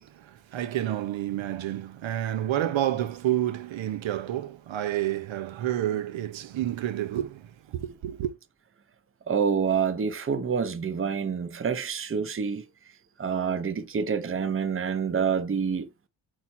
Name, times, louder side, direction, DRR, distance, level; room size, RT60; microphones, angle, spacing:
voice 1, 0.0-8.3, right 12 dB, 80° right, 1.0 m, -29 dB
voice 2, 9.3-12.6 13.2-15.9, right 6 dB, 30° right, 0.9 m, -27 dB
5.9 x 4.3 x 4.3 m
wide cardioid pair, 155°, 45 cm